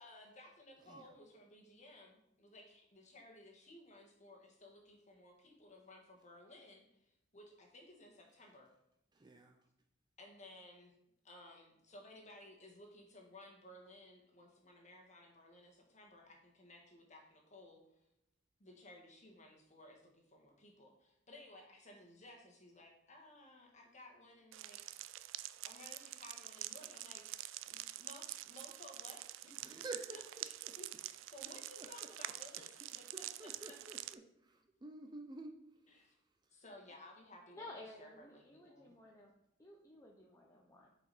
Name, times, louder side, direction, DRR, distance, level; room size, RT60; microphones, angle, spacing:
voice 1, 0.0-8.7 10.2-10.9 11.2-17.8 18.6-24.8 25.6-27.3 27.6-29.5 29.8-33.8 35.9-36.1 36.5-38.9, left 1 dB, 40° left, 1 dB, 1.6 m, -58 dB
voice 2, 9.2-9.5 29.6-30.2 30.6-30.7 31.5-31.9 33.1-34.2 34.5-35.6, right 2 dB, 20° right, 4 dB, 0.5 m, -50 dB
sound 1, 24.5-34.1, right 15 dB, 85° right, 0.3 m, -47 dB
voice 3, 37.5-39.3 39.6-40.9, left 2 dB, 15° left, -2 dB, 0.7 m, -54 dB
7.7 x 5.0 x 4.1 m, 0.81 s
head